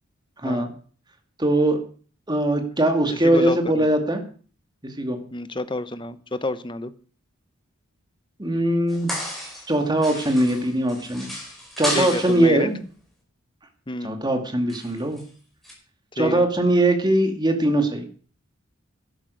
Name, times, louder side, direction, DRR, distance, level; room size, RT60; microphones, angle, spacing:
voice 1, 1.4-1.8 2.3-4.2 4.8-5.2 8.4-9.1 9.7-11.3 11.8-12.8 14.0-15.2 16.2-18.1, right 1 dB, 20° right, 5 dB, 2.2 m, -21 dB
voice 2, 3.1-3.9 5.3-6.9 11.9-12.7 13.9-14.1 16.2-16.5, left 2 dB, 25° left, 13 dB, 0.9 m, -29 dB
sound 1, 8.9-9.8 10.0-12.5 14.7-15.2 15.6-15.7, left 1 dB, ahead, 4.9 m, -32 dB
12.0 x 11.0 x 6.4 m, 0.42 s
head